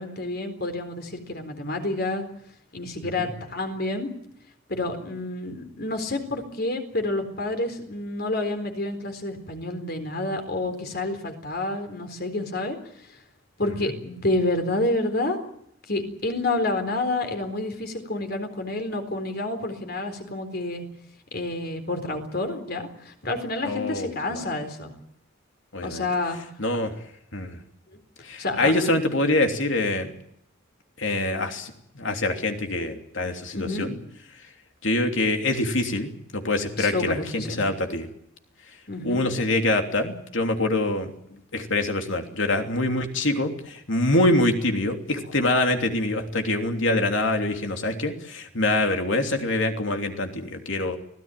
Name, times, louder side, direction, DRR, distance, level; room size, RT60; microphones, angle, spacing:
voice 1, 0.0-2.3 2.7-4.1 4.7-12.8 13.6-15.4 15.9-20.9 21.3-24.9 25.8-26.4 27.9-28.0 28.4-28.7 33.5-33.9 36.8-37.6 38.9-39.2, left 2 dB, 50° left, 6 dB, 4.0 m, -29 dB
voice 2, 23.6-24.4 25.7-26.1 26.6-26.9 27.3-27.6 28.2-30.1 31.0-34.0 34.8-38.1 39.0-51.0, left 2 dB, 65° left, 4 dB, 3.1 m, -25 dB
25.0 x 17.0 x 9.2 m, 0.73 s
head